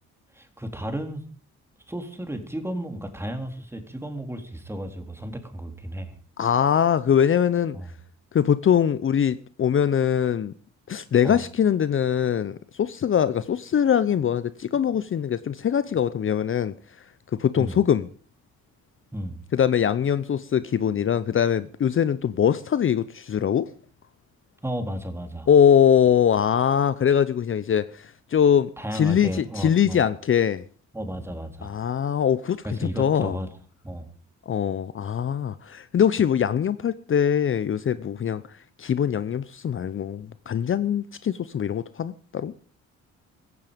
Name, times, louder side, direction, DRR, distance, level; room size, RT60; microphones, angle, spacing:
voice 1, 0.3-1.2 1.9-6.2 7.7-7.9 11.2-11.4 17.6-17.8 19.1-19.4 24.6-25.5 28.8-30.0 30.9-31.8 32.6-33.5 33.8-34.1, equal, 10° right, 3.6 m, -33 dB
voice 2, 6.4-7.8 8.3-10.5 10.9-17.0 17.3-18.1 19.5-23.7 25.5-30.6 31.6-33.4 34.5-42.5, left 8 dB, 45° left, 0.8 m, -22 dB
16.5 x 14.5 x 5.2 m
cardioid pair, 90°, 30 cm